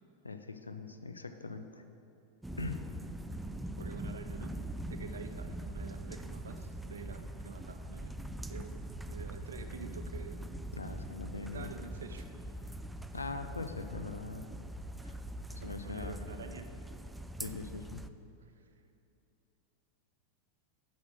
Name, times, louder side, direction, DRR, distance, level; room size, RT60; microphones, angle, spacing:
voice 1, 0.2-1.8 2.6-2.9 10.7-11.7 13.1-14.5 15.0-15.2 15.6-16.2 17.4-18.0, left 3 dB, 80° left, 8 dB, 0.5 m, -41 dB
sound 1, 2.4-18.1, right 1 dB, 5° right, 0.3 m, -42 dB
voice 2, 3.8-4.6 4.9-8.2 8.5-10.4 11.4-12.3 15.5-16.7 18.6-18.7, right 5 dB, 70° right, 7 dB, 0.7 m, -48 dB
9.6 x 6.2 x 6.2 m, 2.8 s
figure-of-eight pair, 90°, 0 cm